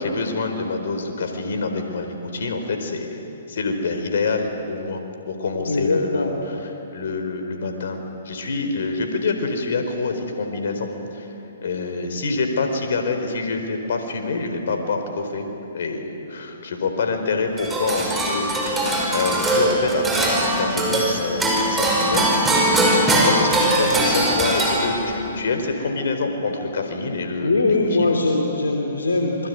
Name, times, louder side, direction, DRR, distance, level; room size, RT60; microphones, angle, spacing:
voice 1, 0.0-3.2 3.5-5.0 5.3-6.2 6.9-8.0 8.2-11.3 11.6-22.3 22.7-27.6 28.0-28.1, left 3 dB, 65° left, 5 dB, 4.3 m, -26 dB
voice 2, 5.6-6.4 27.4-29.5, left 2 dB, 80° left, 2 dB, 3.1 m, -21 dB
sound 1, 17.6-25.3, right 1 dB, 10° right, 5.4 m, -20 dB
27.0 x 22.0 x 9.5 m, 2.9 s
figure-of-eight pair, 125°, 0 cm